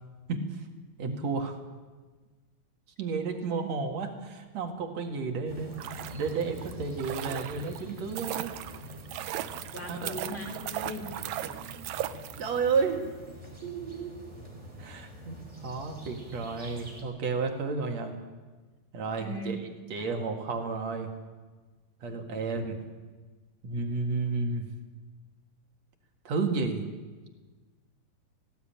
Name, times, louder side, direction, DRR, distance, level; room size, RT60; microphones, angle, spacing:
voice 1, 0.3-0.6 1.0-1.6 3.0-8.5 9.4-9.5 9.8-10.2 12.4-13.0 13.6-14.2 14.8-18.2 18.9-21.1 22.0-22.8 23.6-24.7 26.2-26.9, right 4 dB, 55° right, 3 dB, 2.8 m, -32 dB
sound 1, 5.5-17.0, equal, 10° right, 3.7 m, -45 dB
sound 2, 5.6-12.8 13.0-13.1, right 12 dB, 80° right, 1.7 m, -38 dB
voice 2, 9.7-11.1 19.2-19.6, equal, 5° left, 1 dB, 1.9 m, -38 dB
18.5 x 16.5 x 8.8 m, 1.4 s
omnidirectional pair, 4.0 m